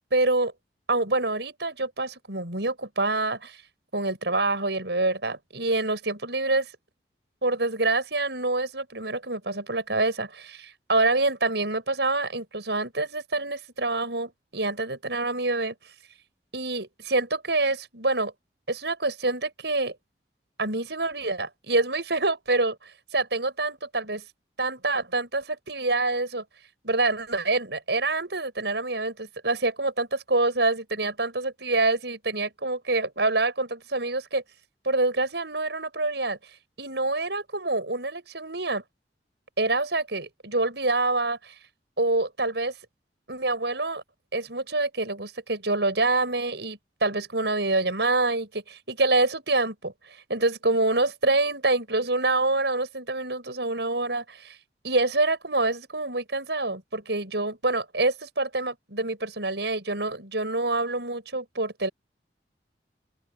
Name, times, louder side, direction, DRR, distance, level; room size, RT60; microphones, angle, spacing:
voice 1, 0.1-0.5 0.9-3.6 3.9-6.7 7.4-15.7 16.5-18.3 18.7-19.9 20.6-22.8 23.1-24.2 24.6-26.4 26.8-34.4 34.8-36.4 36.8-38.8 39.6-41.5 42.0-42.7 43.3-44.0 44.3-49.9 50.3-54.6 54.8-61.9, right 2 dB, 75° right, 7.5 m, -26 dB
open air
head